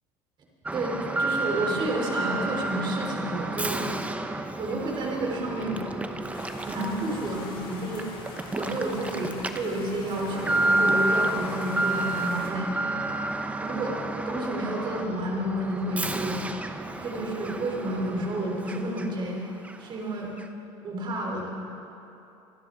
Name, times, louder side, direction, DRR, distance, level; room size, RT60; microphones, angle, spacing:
Alarm, 0.7-19.3 19.6-19.8 20.4-20.5, right 2 dB, 10° right, 0.8 m, -31 dB
voice 1, 0.7-3.9 4.6-5.9 6.6-8.1 8.5-12.7 13.6-14.0 14.3-16.5 17.0-19.4 19.8-20.3 20.8-21.5, right 1 dB, 40° right, -1 dB, 4.0 m, -30 dB
sound 1, 6.3-12.5, left 3 dB, 45° left, 3.7 m, -44 dB
25.5 x 12.0 x 4.0 m, 2.9 s
supercardioid pair, 110°, 12 cm